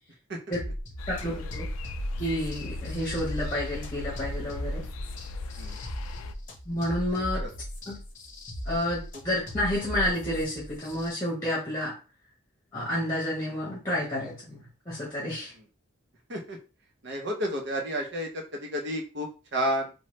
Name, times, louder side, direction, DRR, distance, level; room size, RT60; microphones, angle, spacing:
sound 1, 0.5-11.1, equal, 35° left, 0.7 m, -37 dB
sound 2, 1.0-6.3, left 3 dB, 80° left, 0.3 m, -38 dB
voice 1, 1.1-1.7 2.2-4.8 6.7-7.4 7.9-8.0 8.7-12.0 12.7-15.5, left 1 dB, 15° left, -6 dB, 1.0 m, -30 dB
voice 2, 17.0-19.9, equal, 55° right, 1 dB, 0.7 m, -31 dB
3.0 x 2.1 x 3.1 m, 0.32 s
head